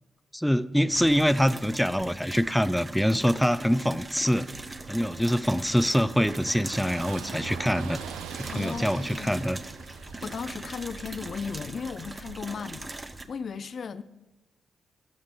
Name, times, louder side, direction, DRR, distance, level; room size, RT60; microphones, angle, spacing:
voice 1, 0.3-4.5 4.9-8.0 8.4-9.6, equal, ahead, 0.4 m, -25 dB
sound 1, 0.9-13.3, right 2 dB, 30° right, 0.7 m, -41 dB
Car passing by / Engine, 4.5-12.4, right 8 dB, 85° right, 0.4 m, -44 dB
voice 2, 8.5-9.4 10.0-14.0, left 6 dB, 60° left, 0.4 m, -36 dB
11.5 x 6.5 x 3.6 m
hypercardioid pair, 45°, 0 cm